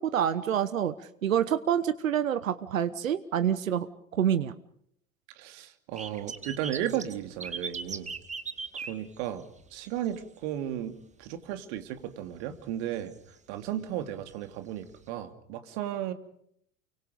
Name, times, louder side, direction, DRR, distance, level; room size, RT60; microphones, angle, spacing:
voice 1, 0.0-3.9 4.1-4.5, right 9 dB, 75° right, 14 dB, 1.2 m, -27 dB
voice 2, 5.3-8.1 8.7-13.1 13.5-16.1, right 11 dB, 55° right, 9 dB, 2.9 m, -35 dB
sound 1, 6.0-10.1 10.4-10.7 11.2-11.3 12.5-12.7 13.1-13.2 14.3-14.4 15.1-15.2, right 5 dB, 15° right, 2.1 m, -38 dB
29.5 x 24.5 x 5.2 m, 0.69 s
figure-of-eight pair, 75°, 40 cm